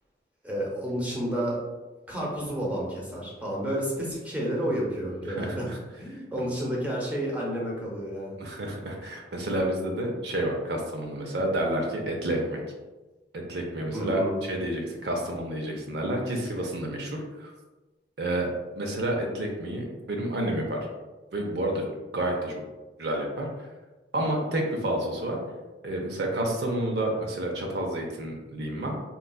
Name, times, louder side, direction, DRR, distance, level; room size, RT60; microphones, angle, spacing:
voice 1, 0.4-1.6 2.1-5.7 6.0-8.4 13.9-14.4, equal, 10° right, -4 dB, 0.7 m, -30 dB
voice 2, 5.3-5.8 6.4-6.5 8.4-12.6 13.3-17.5 18.2-18.5 18.8-20.8 21.3-21.8 22.1-22.6 23.0-23.5 24.1-25.4 25.8-29.0, right 1 dB, 65° right, 1 dB, 0.5 m, -29 dB
3.8 x 2.3 x 2.3 m, 1.2 s
head